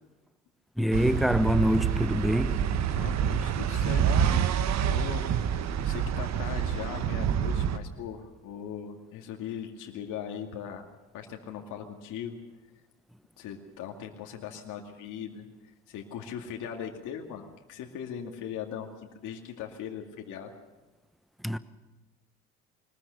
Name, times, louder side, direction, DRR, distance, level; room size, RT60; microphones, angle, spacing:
voice 1, 0.8-2.7 21.4-21.6, equal, ahead, 1.1 m, -25 dB
sound 1, 0.9-7.8, right 8 dB, 50° right, 1.4 m, -27 dB
voice 2, 2.9-4.6 4.9-10.9 11.1-12.4 13.4-20.5, left 8 dB, 60° left, 2.4 m, -40 dB
22.0 x 20.0 x 6.7 m
hypercardioid pair, 60°, 34 cm